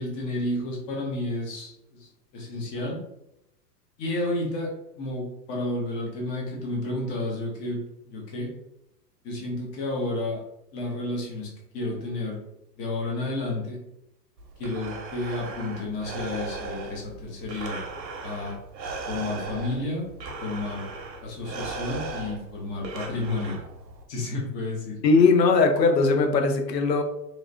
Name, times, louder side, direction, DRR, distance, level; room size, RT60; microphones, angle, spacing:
voice 1, 0.0-3.0 4.0-8.5 9.2-10.4 10.7-12.4 12.8-13.8 14.6-17.8 18.2-18.6 19.1-20.1 20.4-20.9 21.2-23.6 24.1-25.0, left 2 dB, 15° left, -2 dB, 0.4 m, -31 dB
Breathing, 14.4-24.0, right 3 dB, 85° right, 0.8 m, -37 dB
voice 2, 25.0-27.0, left 4 dB, 80° left, 5 dB, 0.6 m, -19 dB
3.1 x 2.4 x 2.5 m, 0.83 s
figure-of-eight pair, 100°, 50 cm